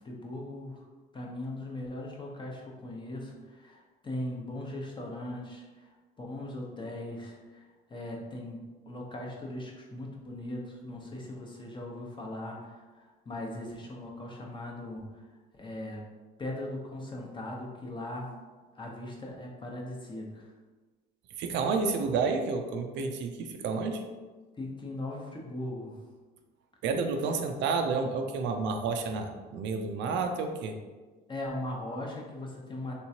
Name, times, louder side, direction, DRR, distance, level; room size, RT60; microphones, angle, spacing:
voice 1, 0.0-0.9 1.1-5.9 6.2-7.6 7.9-8.6 8.9-15.2 15.5-16.0 16.4-18.3 18.7-20.5 24.6-26.0 31.3-33.0, left 1 dB, 25° left, -1 dB, 0.8 m, -39 dB
voice 2, 21.4-24.0 26.8-30.7, right 4 dB, 70° right, 5 dB, 0.5 m, -30 dB
3.3 x 3.0 x 2.8 m, 1.3 s
cardioid pair, 90°, 19 cm